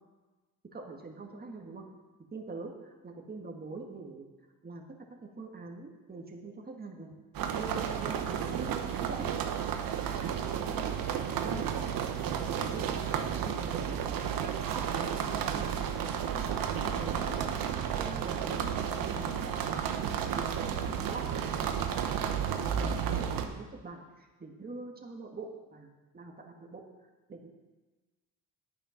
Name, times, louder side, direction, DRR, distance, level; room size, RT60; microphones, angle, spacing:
voice 1, 0.6-1.9 2.3-2.7 3.0-4.3 4.6-4.9 5.2-7.2 7.5-9.3 10.5-11.7 12.4-14.0 14.6-20.5 21.0-25.9 26.1-26.8 27.3-27.5, right 3 dB, 25° right, 1 dB, 1.8 m, -44 dB
sound 1, 7.3-23.5, right 8 dB, 75° right, 1.1 m, -32 dB
9.3 x 9.0 x 5.9 m, 1.3 s
cardioid pair, 95°, 35 cm